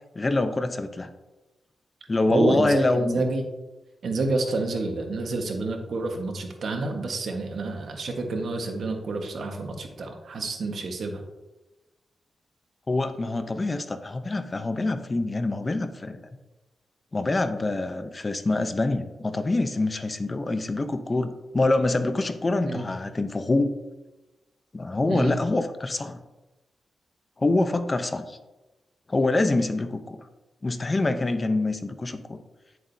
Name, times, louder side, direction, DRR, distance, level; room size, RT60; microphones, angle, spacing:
voice 1, 0.1-1.1 2.1-3.2 12.9-16.2 17.1-23.7 24.7-26.2 27.4-28.4 29.1-30.2 30.6-32.4, left 2 dB, 30° left, 9 dB, 0.7 m, -25 dB
voice 2, 2.3-3.4 4.0-11.2 22.6-22.9 25.1-25.4, right 3 dB, 70° right, 3 dB, 1.4 m, -28 dB
10.0 x 7.6 x 2.7 m, 1.1 s
cardioid pair, 80°, 0 cm